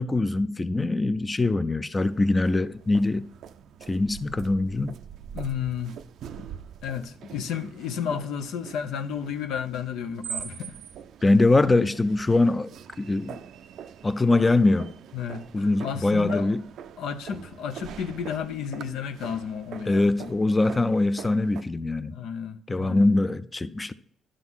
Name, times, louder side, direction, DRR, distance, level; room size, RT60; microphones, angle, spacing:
voice 1, 0.0-3.3 3.9-5.0 11.2-12.7 13.0-13.4 14.0-14.9 15.5-16.6 19.9-22.2 22.7-23.9, left 2 dB, 20° left, 0.4 m, -23 dB
sound 1, 2.0-21.6, right 9 dB, 75° right, 0.4 m, -43 dB
voice 2, 5.3-6.0 6.4-6.5 6.8-10.8 15.1-16.5 17.0-20.3 22.0-23.1, left 7 dB, 85° left, 0.7 m, -32 dB
11.0 x 3.8 x 6.2 m
cardioid pair, 90°, 0 cm